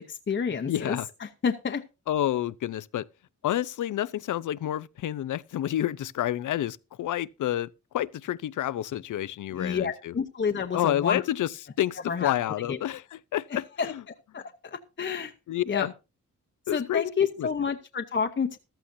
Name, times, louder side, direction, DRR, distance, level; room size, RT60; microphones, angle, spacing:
voice 1, 0.0-1.8 9.5-11.2 12.1-12.3 12.7-12.8 13.5-13.9 14.3-15.3 15.7-15.9 16.7-18.6, left 6 dB, 35° left, 0.9 m, -29 dB
voice 2, 0.7-1.1 2.1-3.1 3.4-10.1 10.7-14.0 15.5-15.9 16.7-17.5, left 12 dB, 75° left, 0.6 m, -29 dB
14.5 x 13.0 x 2.7 m
cardioid pair, 90°, 31 cm